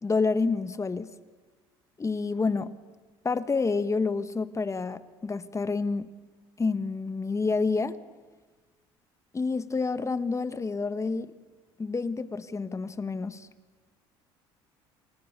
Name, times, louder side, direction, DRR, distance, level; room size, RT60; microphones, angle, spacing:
voice 1, 0.0-1.1 2.0-2.7 3.2-6.1 6.6-8.0 9.3-11.3 11.8-13.5, left 4 dB, 25° left, 13 dB, 1.5 m, -28 dB
29.0 x 28.5 x 6.9 m, 1.3 s
supercardioid pair, 75°, 12 cm